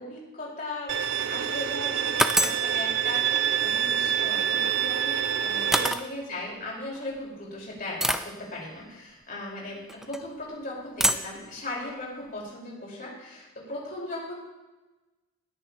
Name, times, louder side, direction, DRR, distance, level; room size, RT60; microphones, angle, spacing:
voice 1, 0.0-14.3, left 1 dB, 45° left, -4 dB, 4.5 m, -38 dB
Bowed string instrument, 0.9-5.9, right 9 dB, 65° right, 0.5 m, -26 dB
sound 1, 1.3-1.4 2.2-2.7 4.7-4.8 5.7-6.1 7.0-7.1 8.0-8.3 9.9-10.2 11.0-11.4, right 1 dB, ahead, 0.3 m, -25 dB
19.0 x 10.0 x 2.9 m, 1.1 s
head